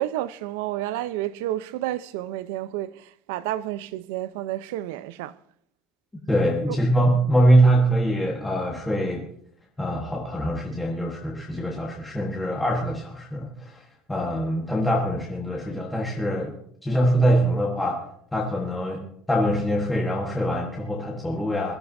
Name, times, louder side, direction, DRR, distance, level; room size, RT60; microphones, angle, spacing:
voice 1, 0.0-5.4 6.7-6.8, right 14 dB, 80° right, 0.7 m, -30 dB
voice 2, 6.3-9.2 9.8-16.5 16.8-18.0 18.3-21.7, right 1 dB, 5° left, 1.4 m, -23 dB
22.0 x 14.0 x 2.7 m
cardioid pair, 175°, 0 cm